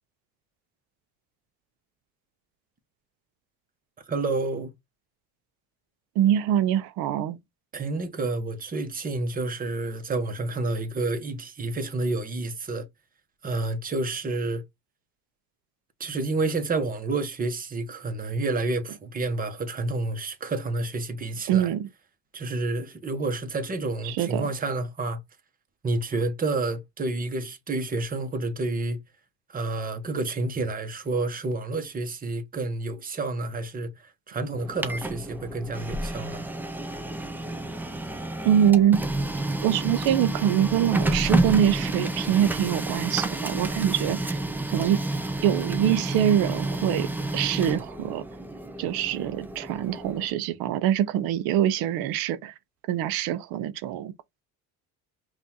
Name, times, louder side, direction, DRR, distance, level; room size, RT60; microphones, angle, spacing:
voice 1, 4.1-4.7 7.7-12.9 13.4-14.6 16.0-21.7 22.3-25.2 25.8-29.0 29.5-36.4, right 2 dB, 25° right, 1.0 m, -29 dB
voice 2, 6.2-7.4 21.5-21.9 24.0-24.5 38.4-39.0 39.6-44.4 44.7-45.0 45.4-47.1 47.3-48.2 48.8-52.5 52.9-54.1, right 10 dB, 85° right, 0.7 m, -24 dB
Printer, 34.5-50.3, right 2 dB, 5° right, 0.4 m, -30 dB
5.4 x 2.5 x 2.9 m
cardioid pair, 125°, 35 cm